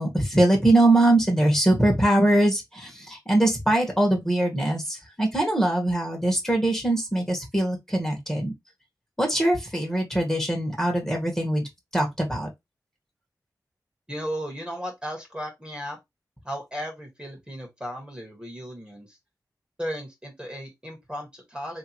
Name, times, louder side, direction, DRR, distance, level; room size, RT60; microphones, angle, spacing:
voice 1, 0.0-8.5 9.2-11.7 11.9-12.5, right 1 dB, 5° left, 1.6 m, -22 dB
voice 2, 14.1-16.0 16.4-19.2 19.8-21.8, equal, 10° right, 1.5 m, -35 dB
3.2 x 2.9 x 3.0 m
wide cardioid pair, 75°, 7 cm